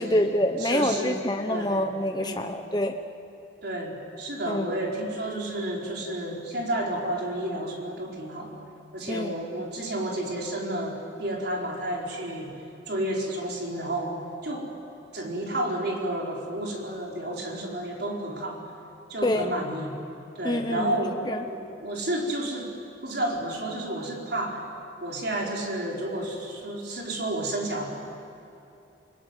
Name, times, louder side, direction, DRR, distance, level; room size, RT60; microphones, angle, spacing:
voice 1, 0.0-2.9 4.5-4.7 9.1-9.3 19.2-19.5 20.4-21.4, left 1 dB, 20° left, 5 dB, 0.9 m, -26 dB
voice 2, 0.6-1.2 1.5-1.9 2.2-2.5 3.6-8.6 8.9-14.7 15.1-18.6 19.1-19.9 20.3-22.7 23.0-24.6 25.0-27.9, right 1 dB, 60° right, -1 dB, 4.6 m, -31 dB
29.0 x 19.5 x 9.1 m, 2.9 s
head